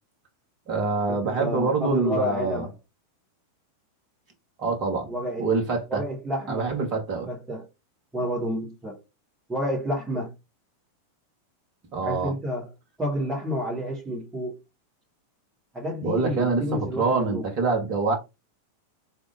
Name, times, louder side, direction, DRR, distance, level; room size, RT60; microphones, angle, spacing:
voice 1, 0.7-2.7 4.6-5.1 5.4-6.0 6.5-7.3 11.9-12.3 16.0-18.1, right 4 dB, 40° right, 1.3 m, -25 dB
voice 2, 1.2-2.7 5.1-5.5 5.9-6.7 7.3-7.7 8.1-9.0 9.5-10.3 12.0-12.7 13.0-14.6 15.7-17.5, equal, 10° right, 2.0 m, -30 dB
3.6 x 2.8 x 3.8 m
figure-of-eight pair, 90°, 0 cm